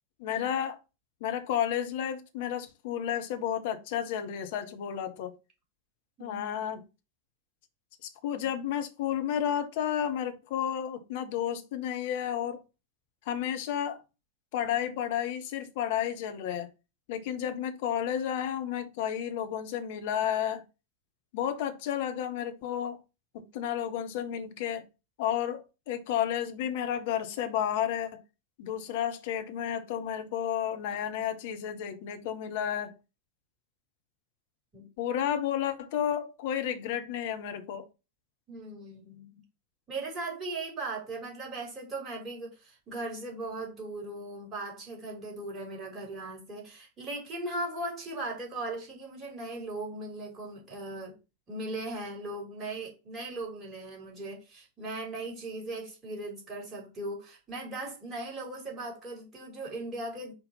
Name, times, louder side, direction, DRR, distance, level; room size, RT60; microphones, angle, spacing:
voice 1, 0.2-0.8 1.2-5.3 6.2-6.8 8.0-12.6 13.3-14.0 14.5-16.7 17.1-20.6 21.3-23.0 23.3-24.8 25.2-28.2 28.6-32.9 35.0-37.9, left 10 dB, 50° left, 1.2 m, -32 dB
voice 2, 38.5-39.4 39.9-51.2 51.5-60.3, right 2 dB, 20° right, 3.7 m, -38 dB
5.4 x 4.4 x 5.6 m
figure-of-eight pair, 90°, 0 cm